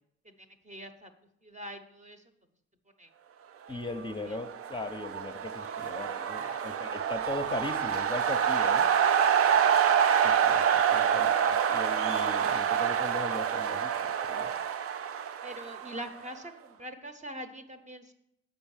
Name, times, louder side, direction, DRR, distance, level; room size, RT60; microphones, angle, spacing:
voice 1, 0.7-1.1 1.4-2.2 3.0-3.1 6.3-6.6 9.5-9.6 15.4-18.0, equal, 25° right, 7 dB, 0.9 m, -43 dB
voice 2, 3.7-8.9 10.2-14.5, left 2 dB, 15° left, 5 dB, 0.7 m, -39 dB
sound 1, 4.3-16.3, right 8 dB, 50° right, 0.5 m, -27 dB
7.3 x 5.4 x 7.2 m, 0.79 s
cardioid pair, 90°, 30 cm